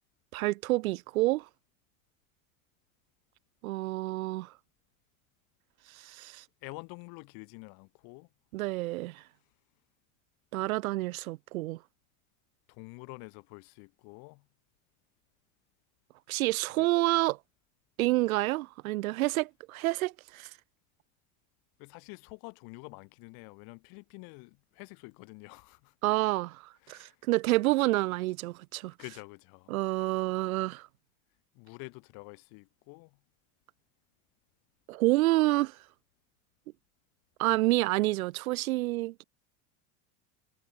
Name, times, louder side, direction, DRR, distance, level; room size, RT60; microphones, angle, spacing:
voice 1, 0.3-1.5 3.6-4.5 5.9-6.4 8.5-9.2 10.5-11.8 16.3-17.4 18.0-20.5 26.0-28.9 29.7-30.9 34.9-35.8 37.4-39.2, right 19 dB, 90° right, 0.7 m, -28 dB
voice 2, 6.6-8.3 12.7-14.4 16.8-16.9 21.8-25.9 26.8-27.1 29.0-29.7 31.5-33.2, left 31 dB, 60° left, 2.6 m, -48 dB
supercardioid pair, 110°, 41 cm